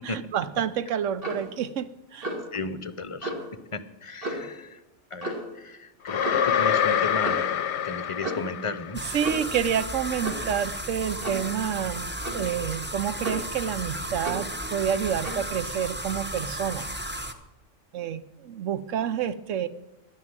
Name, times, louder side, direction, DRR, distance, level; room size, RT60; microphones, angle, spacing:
voice 1, 0.0-2.3 9.1-12.1 12.3-16.8 17.9-19.7, right 8 dB, 80° right, 14 dB, 1.1 m, -29 dB
Clock, 1.2-1.5 2.2-2.5 3.2-3.4 4.2-4.5 5.2-5.5 6.2-6.5 7.2-7.5 8.2-8.6 9.2-9.5 10.2-10.5 11.2-11.5 12.2-12.5 13.2-13.6 14.2-14.5 15.2-15.5, right 1 dB, 50° right, 2.5 m, -33 dB
voice 2, 2.5-3.3 3.7-4.8 5.1-7.5 7.8-9.0, left 3 dB, 35° left, 13 dB, 0.6 m, -35 dB
sound 1, 6.1-9.2, left 9 dB, 65° left, 0.9 m, -26 dB
sound 2, 8.9-17.3, right 1 dB, 10° right, 0.8 m, -34 dB
11.0 x 9.6 x 8.9 m, 0.94 s
omnidirectional pair, 1.3 m